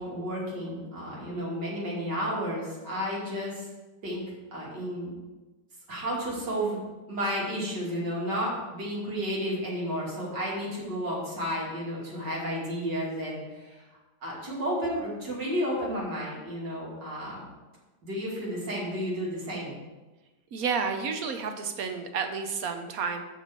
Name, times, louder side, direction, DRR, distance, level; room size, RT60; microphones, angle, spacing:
voice 1, 0.0-3.7 4.0-4.2 4.5-5.1 5.9-6.8 7.1-13.8 14.2-17.4 18.0-19.8, equal, 85° right, -5 dB, 3.3 m, -32 dB
voice 2, 20.5-23.2, right 5 dB, 60° right, 6 dB, 1.3 m, -31 dB
6.7 x 6.3 x 6.7 m, 1.2 s
omnidirectional pair, 1.8 m